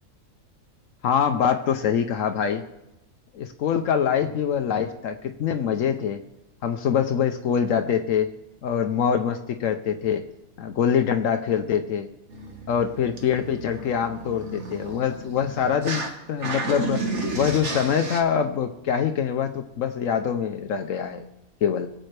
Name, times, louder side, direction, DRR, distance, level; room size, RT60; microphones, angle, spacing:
voice 1, 1.0-2.6 3.3-6.2 6.6-8.3 8.6-10.2 10.6-12.1 12.7-21.2 21.6-21.9, left 8 dB, 70° left, 7 dB, 1.0 m, -24 dB
sound 1, 12.3-16.1 16.4-18.2, right 3 dB, 55° right, 1.6 m, -33 dB
21.5 x 7.8 x 3.2 m, 0.92 s
omnidirectional pair, 1.4 m